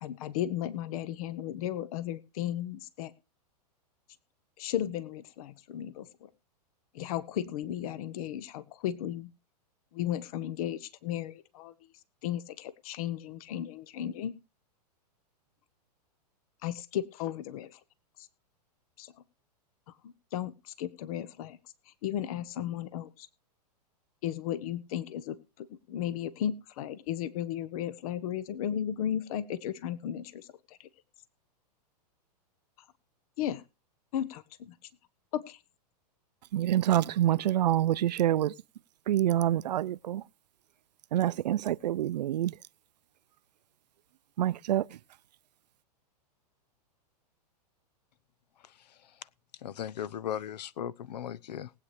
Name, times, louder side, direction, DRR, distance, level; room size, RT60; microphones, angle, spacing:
voice 1, 0.0-3.1 4.6-6.3 6.9-9.3 9.9-11.7 12.2-14.3 16.6-17.8 18.2-18.3 19.0-19.1 20.0-21.6 21.9-23.3 24.2-30.9 33.4-33.6 34.1-34.7 35.3-35.6, left 11 dB, 60° left, 1.1 m, -35 dB
voice 2, 36.5-38.5 39.1-40.2 41.1-42.5 44.4-44.9, right 12 dB, 75° right, 0.5 m, -26 dB
voice 3, 49.6-51.7, left 10 dB, 75° left, 0.8 m, -37 dB
19.5 x 8.7 x 3.2 m
hypercardioid pair, 125°, 21 cm